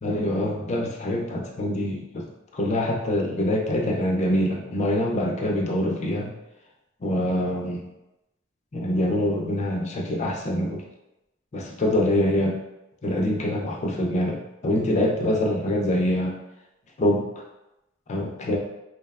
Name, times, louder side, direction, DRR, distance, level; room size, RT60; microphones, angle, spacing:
voice 1, 0.0-2.3 2.5-6.3 7.0-7.8 8.7-10.8 11.5-12.6 13.0-16.3 17.0-17.3 18.1-18.6, left 1 dB, 35° left, 0 dB, 0.4 m, -25 dB
2.7 x 2.1 x 2.2 m, 0.92 s
head